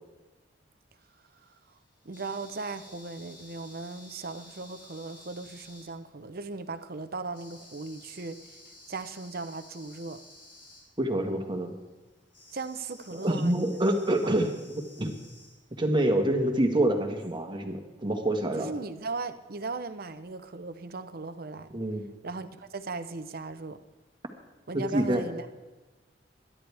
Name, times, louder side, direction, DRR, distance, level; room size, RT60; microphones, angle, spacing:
sound 1, 1.0-6.3 7.3-10.8 12.3-15.6 17.2-17.3, left 1 dB, 50° left, 5.8 m, -53 dB
voice 1, 2.0-8.6 8.9-10.2 12.5-13.9 14.2-14.3 18.6-21.7 22.2-23.8 24.7-25.5, right 3 dB, 55° right, 0.9 m, -38 dB
voice 2, 11.0-11.7 13.1-15.1 15.8-18.7 21.7-22.1 24.7-25.2, right 1 dB, 25° right, 1.7 m, -27 dB
22.0 x 11.0 x 3.5 m
head